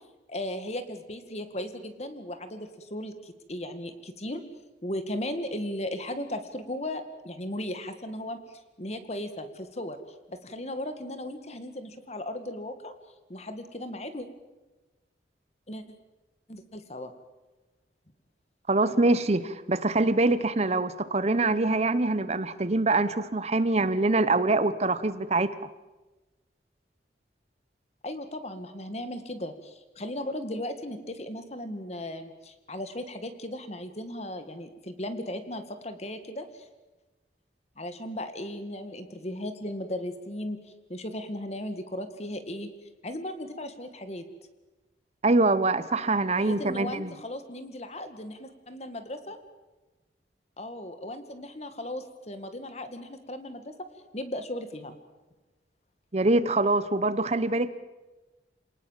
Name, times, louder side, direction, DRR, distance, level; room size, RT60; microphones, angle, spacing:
voice 1, 0.3-4.4 4.8-8.4 8.8-10.0 10.3-12.9 13.3-14.3 15.7-15.8 16.5-17.1 28.0-36.7 37.8-40.6 40.9-42.7 43.0-44.2 46.4-49.4 50.6-53.9 54.1-55.0, left 1 dB, 35° left, 9 dB, 2.1 m, -36 dB
voice 2, 18.7-25.5 45.2-47.1 56.1-57.7, right 2 dB, 35° right, 14 dB, 0.9 m, -24 dB
28.0 x 19.0 x 7.5 m, 1.1 s
head